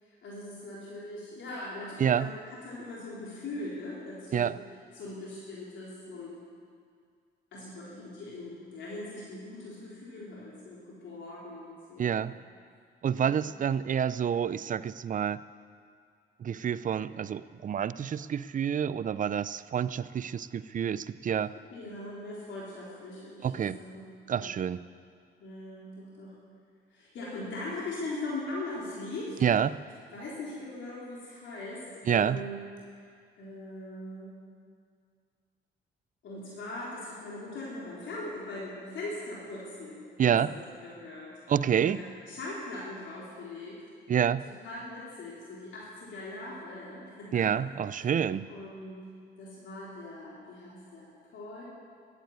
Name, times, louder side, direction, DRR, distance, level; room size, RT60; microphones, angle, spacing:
voice 1, 0.0-4.5 4.9-6.4 7.5-12.3 13.1-13.5 21.7-24.0 24.4-24.6 25.4-26.4 26.9-29.4 30.1-32.6 33.4-34.4 36.2-41.3 41.7-43.8 44.4-47.5 47.9-48.1 48.5-49.0 49.4-51.6, left 2 dB, 70° left, -6 dB, 3.9 m, -41 dB
voice 2, 12.0-12.3 13.0-15.4 16.4-21.5 23.4-23.8 24.3-24.8 29.4-29.8 32.1-32.4 40.2-40.5 41.5-42.0 44.1-44.4 47.3-48.5, right 8 dB, 40° right, 16 dB, 0.5 m, -28 dB
13.0 x 10.5 x 9.4 m, 2.2 s
cardioid pair, 90°, 20 cm